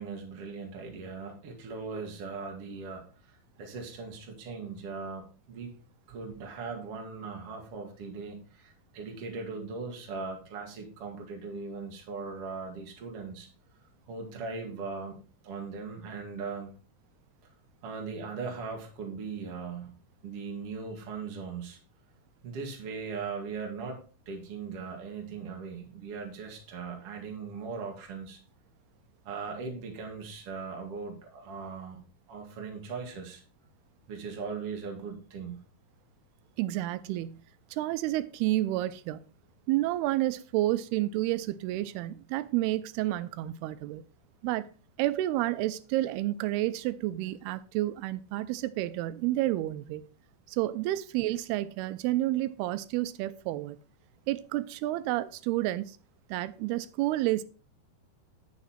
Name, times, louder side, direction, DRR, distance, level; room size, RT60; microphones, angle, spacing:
voice 1, 0.0-5.7 6.1-13.5 14.1-15.2 15.4-16.7 17.8-19.9 20.2-21.8 22.4-24.0 24.3-28.4 29.2-32.0 32.3-33.4 34.1-35.6, right 4 dB, 45° right, 2.3 m, -39 dB
voice 2, 36.6-37.4 37.7-39.2 39.7-44.0 44.4-44.7 45.0-50.0 50.5-53.8 54.3-56.0 56.3-57.4, right 16 dB, 90° right, 2.6 m, -30 dB
9.3 x 6.1 x 4.3 m
omnidirectional pair, 4.5 m